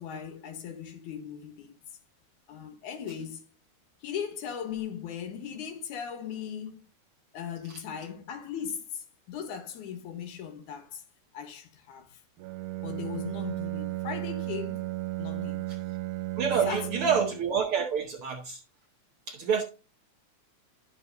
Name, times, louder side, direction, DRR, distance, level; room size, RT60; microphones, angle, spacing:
voice 1, 0.0-1.8 2.5-3.4 4.0-6.8 7.3-11.0 11.3-12.2 12.8-14.9 15.2-15.7 16.7-17.2, left 8 dB, 75° left, 2.6 m, -38 dB
Bowed string instrument, 12.4-17.5, right 17 dB, 90° right, 2.1 m, -34 dB
voice 2, 16.4-18.6 19.3-19.6, right 7 dB, 65° right, 1.4 m, -27 dB
11.0 x 6.7 x 2.6 m
omnidirectional pair, 3.5 m